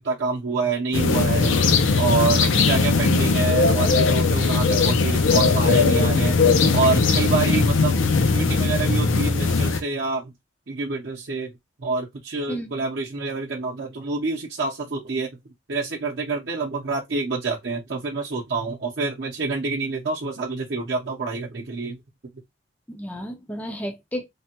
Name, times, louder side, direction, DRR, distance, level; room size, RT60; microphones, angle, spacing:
voice 1, 0.0-1.6 2.0-6.4 6.7-10.3 10.7-11.5 11.8-15.3 15.7-22.0, right 4 dB, 60° right, 0.6 m, -27 dB
sound 1, 0.9-9.8, left 4 dB, 85° left, 0.6 m, -19 dB
voice 2, 2.3-2.7 12.5-12.8 22.9-24.3, equal, 10° left, 0.4 m, -32 dB
3.3 x 2.2 x 2.8 m
head